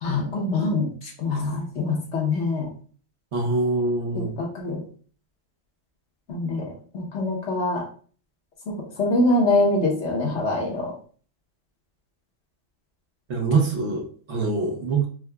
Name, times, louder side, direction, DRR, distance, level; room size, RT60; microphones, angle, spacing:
voice 1, 0.0-2.7 4.1-4.8 6.3-6.7 6.9-7.8 8.7-10.9, left 2 dB, 60° left, -2 dB, 1.2 m, -24 dB
voice 2, 3.3-4.3 13.3-15.1, right 3 dB, 65° right, 0 dB, 1.0 m, -24 dB
4.6 x 2.2 x 2.2 m, 0.43 s
omnidirectional pair, 1.3 m